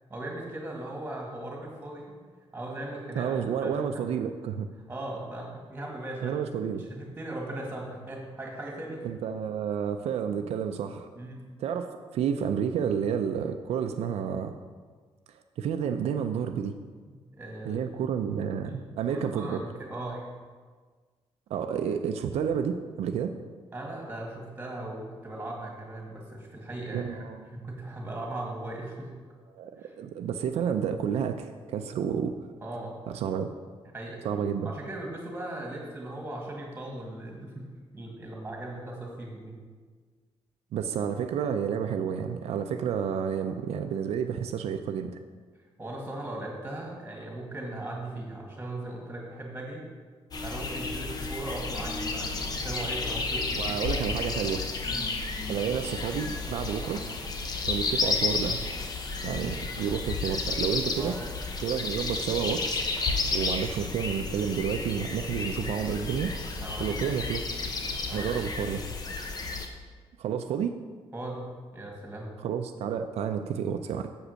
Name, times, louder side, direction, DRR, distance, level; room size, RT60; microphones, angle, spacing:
voice 1, 0.1-2.2 2.5-4.0 4.9-6.4 6.9-9.1 11.1-11.4 17.0-17.8 18.6-20.2 23.7-27.2 27.5-29.1 29.8-29.9 32.6-33.0 33.9-34.2 34.6-37.7 37.9-39.6 45.8-49.9 50.4-53.8 54.8-55.1 61.0-61.2 66.6-67.3 68.1-68.7 71.1-72.3, right 1 dB, 15° right, -1 dB, 2.0 m, -38 dB
voice 2, 3.2-4.7 6.2-6.8 9.0-11.1 11.6-14.5 15.6-16.7 17.6-19.6 21.5-23.3 26.9-27.5 29.5-32.3 33.1-33.5 34.2-34.7 40.7-45.2 53.6-54.6 55.5-57.0 57.7-58.6 59.2-61.2 61.6-62.8 63.3-66.3 66.8-67.4 68.1-68.8 70.2-70.8 72.4-74.1, right 7 dB, 85° right, 6 dB, 0.5 m, -30 dB
sound 1, 50.3-69.7, left 3 dB, 40° left, 0.8 m, -32 dB
7.3 x 5.1 x 6.4 m, 1.5 s
wide cardioid pair, 150°, 10 cm